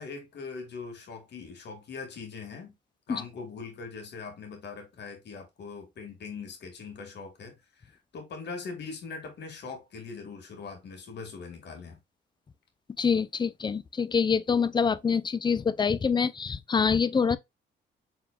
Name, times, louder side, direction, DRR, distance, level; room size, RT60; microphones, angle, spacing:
voice 1, 0.0-2.7 3.1-12.0, left 4 dB, 60° left, 1.8 m, -41 dB
voice 2, 13.0-17.4, left 6 dB, 25° left, 0.4 m, -25 dB
4.7 x 3.7 x 2.3 m
cardioid pair, 90°, 20 cm